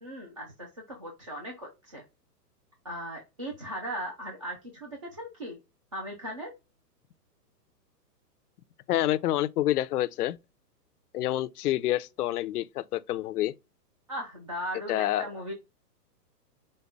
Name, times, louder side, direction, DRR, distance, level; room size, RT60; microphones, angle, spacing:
voice 1, 0.0-2.0 2.8-5.6 5.9-6.5 14.1-15.5, equal, 25° right, 0.3 m, -38 dB
voice 2, 8.9-10.4 11.1-13.5 14.9-15.3, left 14 dB, 65° left, 0.6 m, -28 dB
5.3 x 2.2 x 3.3 m
hypercardioid pair, 145°, 49 cm